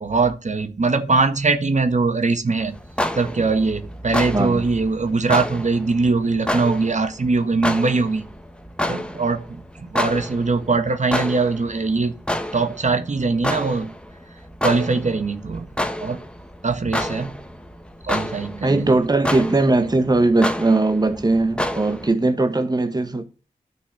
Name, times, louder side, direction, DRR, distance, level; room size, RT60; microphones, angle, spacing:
voice 1, 0.0-2.8 3.1-8.2 8.9-9.4 9.8-12.1 12.5-13.9 14.6-15.7 16.0-16.2 16.6-17.3 18.1-19.0, right 3 dB, 55° right, 1.4 m, -21 dB
sound 1, 2.6-22.1, left 1 dB, 5° left, 1.7 m, -30 dB
voice 2, 4.3-4.6 18.6-23.2, right 2 dB, 25° right, 1.2 m, -19 dB
9.9 x 6.1 x 7.7 m
cardioid pair, 55°, 15 cm